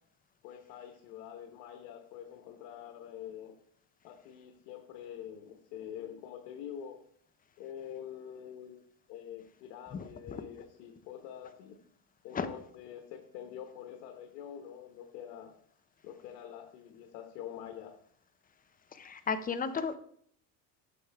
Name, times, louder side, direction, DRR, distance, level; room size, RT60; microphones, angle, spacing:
voice 1, 0.4-3.6 4.0-7.0 7.6-8.8 9.1-11.8 12.2-15.5 16.0-18.0, left 9 dB, 90° left, 5 dB, 1.2 m, -46 dB
voice 2, 9.9-10.4 12.3-12.5 18.9-20.0, left 5 dB, 20° left, 10 dB, 0.5 m, -34 dB
8.4 x 7.2 x 3.4 m, 0.63 s
supercardioid pair, 120°, 49 cm